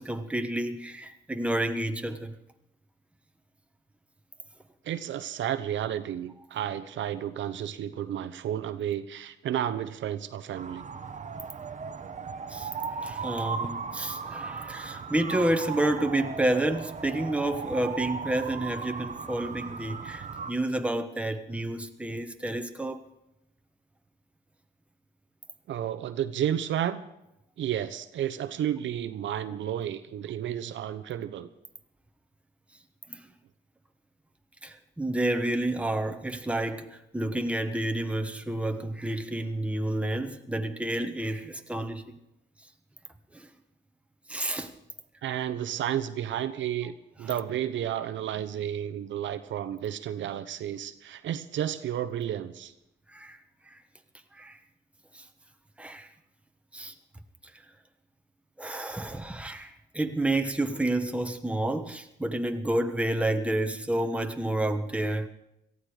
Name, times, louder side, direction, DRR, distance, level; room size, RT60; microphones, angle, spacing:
voice 1, 0.0-2.3 12.5-23.0 33.1-33.3 34.6-42.2 43.3-43.5 44.3-44.7 53.1-53.4 53.7-53.8 54.3-54.6 55.1-55.3 55.8-56.1 56.7-56.9 57.5-57.6 58.6-65.3, right 1 dB, 5° right, 1.3 m, -30 dB
voice 2, 4.8-10.8 25.7-27.0 27.6-31.5 45.2-52.7, right 10 dB, 70° right, 0.9 m, -32 dB
sound 1, 10.5-20.5, right 5 dB, 40° right, 1.0 m, -37 dB
18.0 x 14.0 x 5.0 m
cardioid pair, 90°, 20 cm